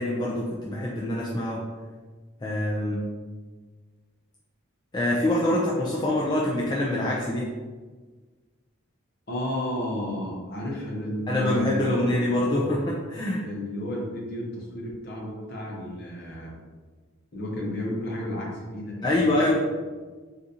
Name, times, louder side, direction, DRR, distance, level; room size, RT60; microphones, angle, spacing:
voice 1, 0.0-1.6 2.4-3.0 4.9-7.5 11.3-13.4 19.0-19.5, left 1 dB, 20° left, -5 dB, 0.3 m, -25 dB
voice 2, 9.3-12.2 13.3-16.6 17.3-19.5, left 1 dB, 50° left, -3 dB, 0.8 m, -32 dB
3.8 x 2.5 x 2.7 m, 1.4 s
head